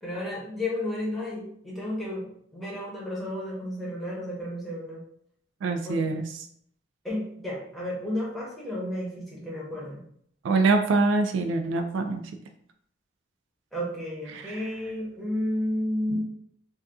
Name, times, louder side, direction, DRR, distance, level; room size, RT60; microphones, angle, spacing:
voice 1, 0.0-5.0 5.8-6.1 7.0-10.0 13.7-16.2, left 1 dB, ahead, -6 dB, 0.9 m, -32 dB
voice 2, 5.6-6.2 10.4-12.2 14.3-14.6 16.1-16.2, right 3 dB, 70° right, 5 dB, 0.3 m, -24 dB
2.7 x 2.3 x 3.5 m, 0.66 s
head